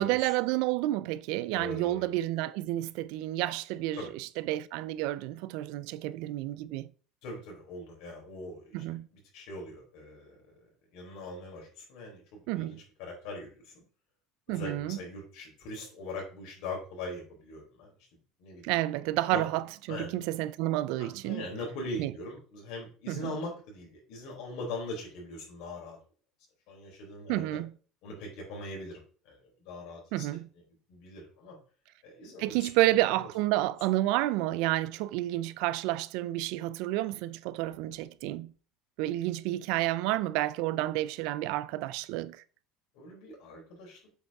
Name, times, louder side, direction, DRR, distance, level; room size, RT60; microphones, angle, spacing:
voice 1, 0.0-6.9 8.7-9.1 12.5-12.8 14.5-15.0 18.6-21.4 22.0-22.1 23.1-23.4 27.3-27.7 30.1-30.5 32.4-38.5 39.0-42.4, right 16 dB, 70° right, 0.4 m, -30 dB
voice 2, 1.5-2.1 4.0-4.1 7.2-10.4 10.9-13.8 14.5-17.9 18.4-18.7 19.3-19.4 19.9-20.2 21.0-26.0 26.7-27.6 28.0-30.2 30.9-31.6 32.0-32.6 33.1-33.2 42.9-44.0, left 2 dB, 70° left, 3.9 m, -41 dB
7.8 x 5.2 x 3.5 m
cardioid pair, 145°, 0 cm